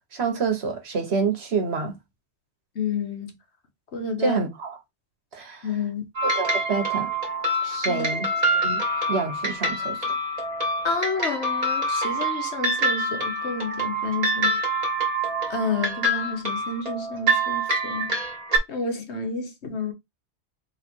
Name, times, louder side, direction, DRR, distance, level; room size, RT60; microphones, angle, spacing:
voice 1, 0.1-2.0 4.2-4.8 5.3-5.7 6.2-7.1 7.6-8.8 9.1-10.0, right 4 dB, 70° right, 1.5 m, -27 dB
voice 2, 2.7-3.3 3.9-4.4 5.6-6.0 7.9-8.1 10.8-14.6 15.5-18.2 18.7-19.9, left 4 dB, 85° left, 1.5 m, -30 dB
sound 1, 6.2-18.6, right 1 dB, 35° right, 1.4 m, -26 dB
3.4 x 3.3 x 4.5 m
omnidirectional pair, 1.1 m